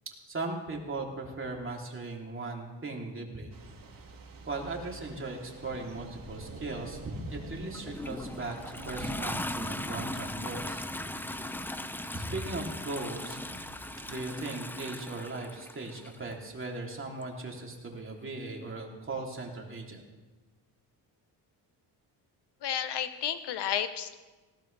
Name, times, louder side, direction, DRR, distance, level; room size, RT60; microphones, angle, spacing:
voice 1, 0.3-3.5 4.5-10.8 12.1-13.6 14.1-20.0, right 2 dB, 30° right, 0 dB, 3.2 m, -38 dB
Thunder / Rain, 3.5-14.6, right 3 dB, 50° right, 2.2 m, -48 dB
Toilet flush, 7.7-16.2 17.2-17.3, left 1 dB, 5° left, 0.5 m, -38 dB
voice 2, 22.6-24.2, left 9 dB, 65° left, 11 dB, 1.0 m, -32 dB
19.0 x 16.5 x 3.4 m, 1.2 s
cardioid pair, 95°, 44 cm